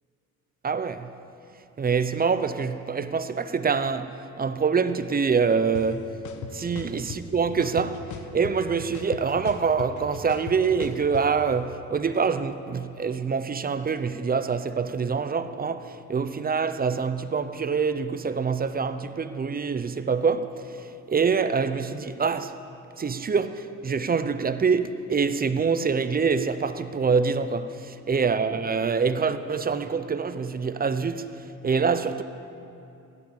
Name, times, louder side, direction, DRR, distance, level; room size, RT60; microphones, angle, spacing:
voice 1, 0.6-1.1 1.8-6.2 6.5-22.6 23.0-32.2, right 5 dB, 30° right, 0.8 m, -25 dB
sound 1, 5.7-5.8 6.2-7.2 7.6-8.7 8.9-11.2, left 7 dB, 75° left, 1.3 m, -37 dB
16.0 x 12.0 x 7.0 m
cardioid pair, 90°, 30 cm